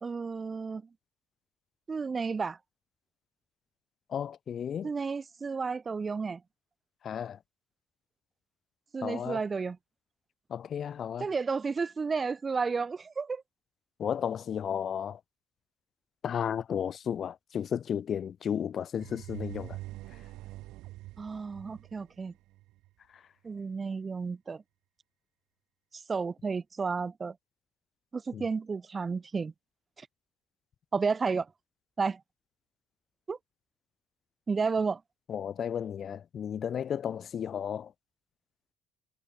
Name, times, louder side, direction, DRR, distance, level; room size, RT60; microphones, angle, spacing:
voice 1, 0.0-0.8 1.9-2.6 4.8-6.4 8.9-9.8 11.2-13.4 21.2-22.3 23.4-24.6 25.9-27.3 28.1-29.5 30.0-30.1 30.9-31.5 32.0-32.2 33.3-33.4 34.5-35.0, right 5 dB, 20° right, 1.3 m, -32 dB
voice 2, 4.1-4.9 7.0-7.4 9.0-9.4 10.5-11.3 14.0-15.2 16.2-19.8 28.3-28.4 35.3-37.9, left 8 dB, 40° left, 0.6 m, -33 dB
sound 1, 19.0-22.9, right 17 dB, 75° right, 1.1 m, -44 dB
cardioid pair, 145°, 0 cm